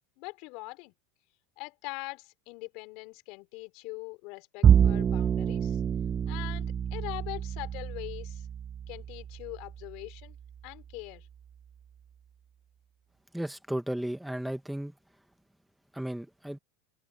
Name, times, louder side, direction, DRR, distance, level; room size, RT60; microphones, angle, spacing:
voice 1, 0.2-0.9 1.6-5.8 6.3-8.5 8.9-10.4 10.6-11.3, left 26 dB, 60° left, 4.5 m, -42 dB
Bowed string instrument, 4.6-11.1, right 8 dB, 30° right, 1.1 m, -28 dB
voice 2, 13.3-14.9 15.9-16.6, right 1 dB, 5° right, 1.5 m, -34 dB
supercardioid pair, 110°, 0 cm